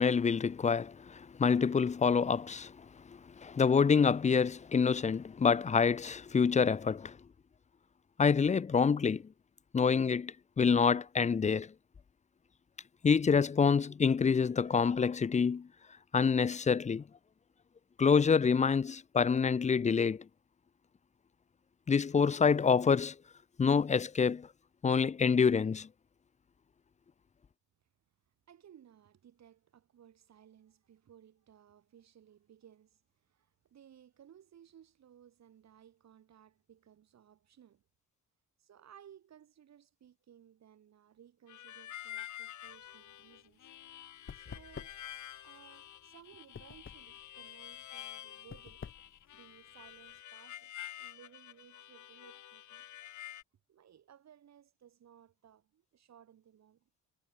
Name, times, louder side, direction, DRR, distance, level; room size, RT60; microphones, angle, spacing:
voice 1, 0.0-7.2 8.2-9.2 9.7-11.7 13.0-15.7 16.1-17.0 18.0-20.2 21.9-23.1 23.6-24.5 24.8-25.9, left 6 dB, 25° left, 0.6 m, -27 dB
voice 2, 28.5-37.8 38.6-45.1 45.4-48.9 49.3-52.9 53.7-56.9, right 9 dB, 60° right, 5.6 m, -60 dB
Harmonica, 41.5-53.4, left 12 dB, 70° left, 4.0 m, -48 dB
sound 1, 42.7-50.2, left 6 dB, 40° left, 3.6 m, -51 dB
cardioid pair, 90°, 30 cm